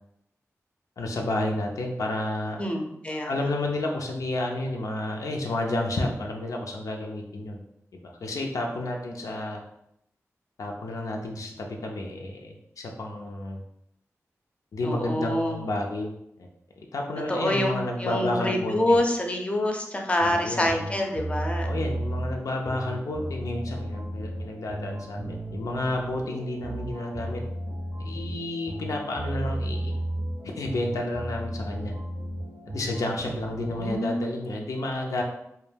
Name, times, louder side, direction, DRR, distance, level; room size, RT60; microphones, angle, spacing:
voice 1, 1.0-2.6 3.2-7.6 7.9-9.6 10.6-13.6 14.7-16.1 16.4-16.5 16.8-19.0 20.2-20.7 21.6-27.4 28.0-29.9 30.6-31.9 32.7-35.2, left 2 dB, 85° left, 1 dB, 0.4 m, -31 dB
voice 2, 2.6-3.4 14.8-15.6 17.3-17.7 18.0-21.7 33.7-34.1, left 1 dB, 20° left, 2 dB, 0.4 m, -26 dB
sound 1, 20.3-34.0, right 1 dB, 70° right, 0.5 m, -34 dB
2.2 x 2.1 x 3.2 m, 0.79 s
wide cardioid pair, 65°, 6 cm